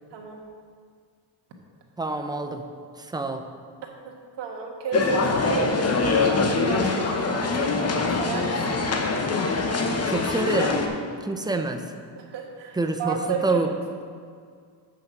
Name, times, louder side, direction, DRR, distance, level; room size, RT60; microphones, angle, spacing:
voice 1, 0.1-0.4 3.8-8.8 12.1-13.7, right 6 dB, 80° right, 1 dB, 1.5 m, -32 dB
voice 2, 2.0-2.6 3.0-3.5 9.9-10.8 11.2-11.8 12.8-13.2 13.4-13.7, right 2 dB, 10° right, 6 dB, 0.5 m, -27 dB
sound 1, 4.9-10.9, left 4 dB, 35° left, 0.9 m, -24 dB
7.7 x 5.8 x 5.9 m, 2.1 s
cardioid pair, 115°, 42 cm